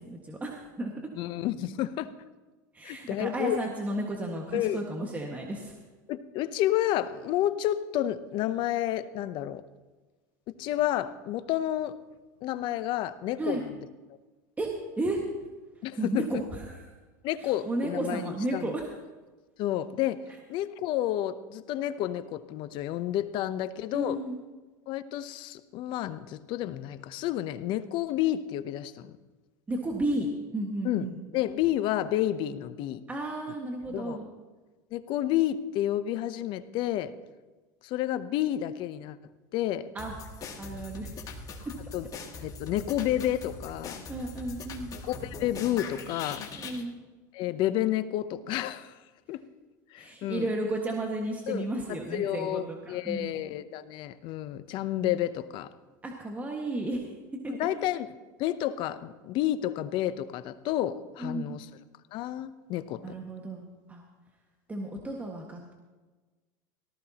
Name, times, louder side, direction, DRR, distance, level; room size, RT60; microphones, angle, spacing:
voice 1, 0.0-1.1 2.7-5.8 13.4-13.6 14.6-15.2 16.0-16.9 17.4-18.9 23.9-24.4 29.7-31.2 33.1-34.3 39.9-40.1 40.6-41.2 44.1-45.0 46.6-47.0 50.0-53.3 56.0-57.2 57.4-57.7 61.2-61.6 63.0-64.0 64.7-65.7, right 1 dB, 15° right, 0 dB, 1.7 m, -33 dB
voice 2, 1.2-2.1 2.8-3.6 4.5-4.8 6.1-9.6 10.5-12.0 12.4-13.7 15.8-16.3 17.2-18.7 19.6-20.2 20.5-24.2 24.9-29.2 30.8-31.1 31.3-33.0 33.9-34.2 34.9-37.1 37.8-39.2 39.5-39.9 41.9-42.1 42.4-44.0 45.0-46.5 47.3-49.0 49.3-49.4 49.9-50.5 51.5-51.6 52.1-55.7 57.6-58.1 58.4-61.7 62.1-63.0, left 13 dB, 55° left, 13 dB, 0.7 m, -30 dB
sound 1, 40.0-46.8, left 3 dB, 35° left, 2.3 m, -41 dB
18.0 x 14.5 x 2.9 m, 1.3 s
hypercardioid pair, 95°, 10 cm